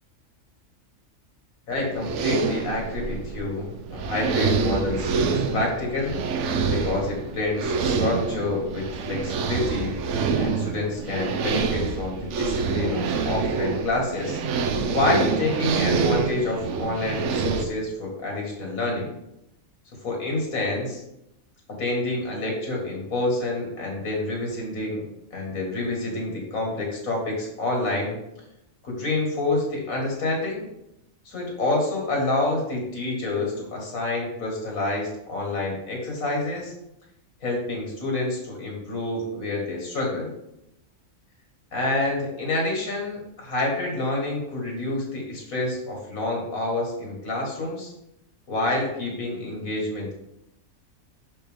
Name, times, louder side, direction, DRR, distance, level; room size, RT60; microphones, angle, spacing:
voice 1, 1.7-6.1 6.7-9.9 10.4-14.4 14.9-19.1 20.0-21.0 21.8-25.0 25.3-28.2 28.8-30.7 31.3-36.7 37.4-40.3 41.7-47.9 48.5-50.1, left 2 dB, 85° left, -1 dB, 2.2 m, -28 dB
sound 1, 1.7-17.7, right 5 dB, 65° right, 0.9 m, -26 dB
5.8 x 5.7 x 3.5 m, 0.83 s
omnidirectional pair, 1.4 m